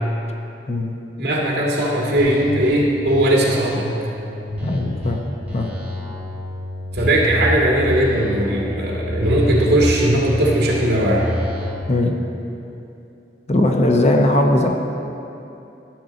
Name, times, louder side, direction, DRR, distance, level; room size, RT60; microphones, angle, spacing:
voice 1, 1.2-4.0 6.9-11.2, right 1 dB, 65° right, -4 dB, 2.0 m, -18 dB
sound 1, 2.2-2.7 3.1-5.1 5.5-7.6 7.9-9.9 10.3-11.7, equal, 10° right, 1.9 m, -28 dB
voice 2, 4.6-5.2 5.5-5.7 11.9-12.1 13.5-14.7, left 1 dB, 40° left, 2 dB, 0.8 m, -18 dB
13.0 x 7.6 x 3.9 m, 2.8 s
head